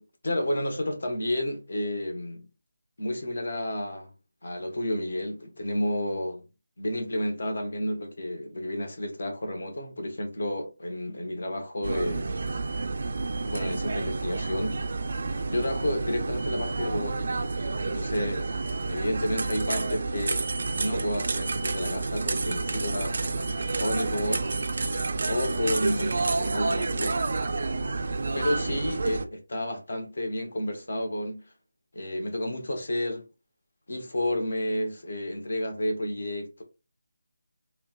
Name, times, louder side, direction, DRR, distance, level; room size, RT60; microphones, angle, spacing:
voice 1, 0.0-2.4 3.0-4.1 4.4-6.4 6.8-12.3 13.5-14.8 15.5-17.4 17.9-18.5 18.9-20.4 20.8-23.1 23.5-24.4 25.3-27.6 28.3-31.4 31.9-33.3 33.9-36.6, left 1 dB, 65° left, 0.9 m, -31 dB
sound 1, 11.8-29.2, right 3 dB, 55° right, 0.3 m, -29 dB
3.1 x 2.2 x 2.3 m
figure-of-eight pair, 160°, 0 cm